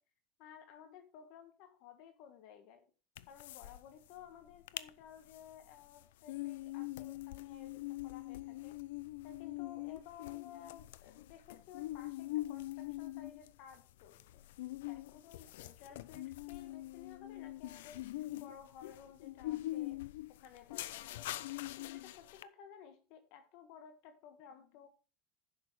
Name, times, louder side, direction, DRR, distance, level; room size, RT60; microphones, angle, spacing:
voice 1, 0.4-2.8 3.3-8.8 9.2-14.4 14.9-24.9, left 8 dB, 65° left, 8 dB, 1.5 m, -56 dB
sound 1, 3.2-3.8 4.1-4.2 4.5-4.9 5.3-22.4, left 16 dB, 90° left, 0.5 m, -43 dB
10.5 x 6.8 x 4.7 m, 0.36 s
supercardioid pair, 120°, 0 cm